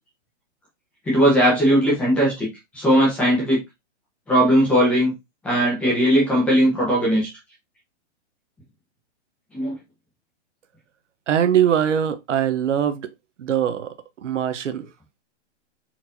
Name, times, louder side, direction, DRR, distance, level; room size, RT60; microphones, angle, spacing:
voice 1, 1.1-2.5 2.7-3.6 4.3-5.1 5.4-7.3 9.5-9.7, equal, 5° left, 0.8 m, -18 dB
voice 2, 11.3-13.1 13.4-13.9 14.2-14.9, right 9 dB, 80° right, 0.9 m, -21 dB
4.4 x 4.4 x 2.6 m
hypercardioid pair, 175°, 36 cm